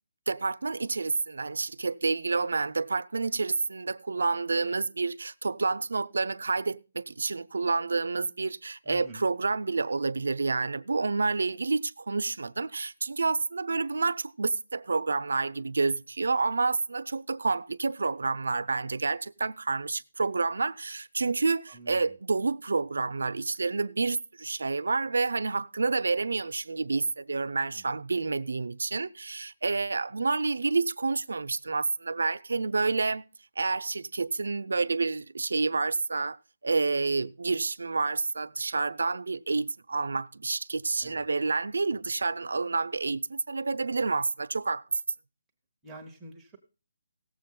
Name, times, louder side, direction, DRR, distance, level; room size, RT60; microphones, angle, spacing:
voice 1, 0.3-33.3 33.6-36.4 36.6-45.0, right 3 dB, 90° right, 0.6 m, -29 dB
voice 2, 8.9-9.2 21.7-22.0 27.8-27.9 41.0-41.2 45.8-46.6, right 1 dB, 5° right, 0.8 m, -46 dB
17.0 x 7.6 x 3.7 m
hypercardioid pair, 180°, 0 cm